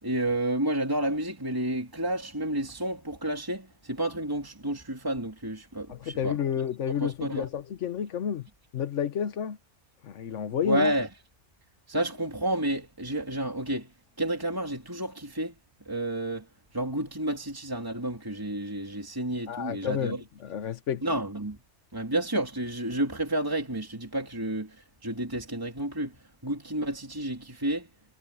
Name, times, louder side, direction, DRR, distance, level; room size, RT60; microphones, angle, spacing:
voice 1, 0.0-6.4 6.9-7.5 10.6-11.1 11.9-13.9 14.2-15.6 15.8-16.5 16.7-20.2 21.0-21.6 21.9-27.9, right 1 dB, 15° right, 2.9 m, -30 dB
voice 2, 5.9-8.5 8.7-9.6 10.0-10.9 19.5-21.0, left 8 dB, 75° left, 1.2 m, -30 dB
omnidirectional pair, 1.3 m